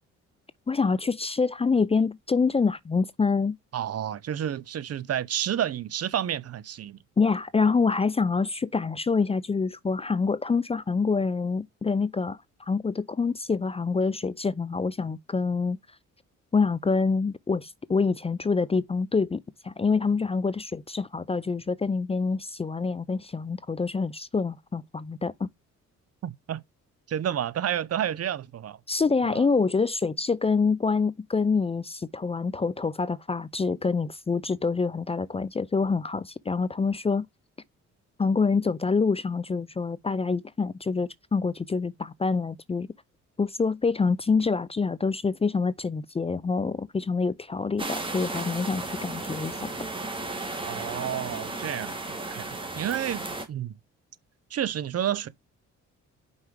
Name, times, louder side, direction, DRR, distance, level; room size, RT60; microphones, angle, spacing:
voice 1, 0.7-3.6 7.2-15.8 16.5-25.5 28.9-37.3 38.2-42.9 43.4-49.7, left 4 dB, 20° left, 0.5 m, -26 dB
voice 2, 3.7-7.0 26.2-26.6 27.1-28.8 29.3-29.5 50.6-53.2 53.5-53.7 54.5-55.3, right 10 dB, 55° right, 0.8 m, -30 dB
sound 1, 47.8-53.5, right 2 dB, 15° right, 2.5 m, -34 dB
5.7 x 4.7 x 4.6 m
cardioid pair, 90°, 30 cm